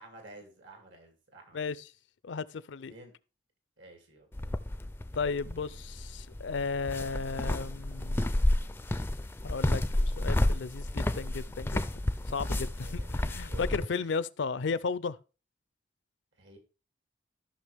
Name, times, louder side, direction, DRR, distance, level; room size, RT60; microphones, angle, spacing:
voice 1, 0.0-1.8 2.9-3.1 3.8-4.3 12.8-13.2 13.5-14.0 16.4-16.6, right 2 dB, 75° right, 2.7 m, -51 dB
voice 2, 2.2-2.9 5.1-8.2 9.4-11.9 12.3-15.2, left 4 dB, 75° left, 0.5 m, -34 dB
sound 1, 4.3-13.9, left 1 dB, 10° left, 0.4 m, -31 dB
14.0 x 6.0 x 3.5 m
head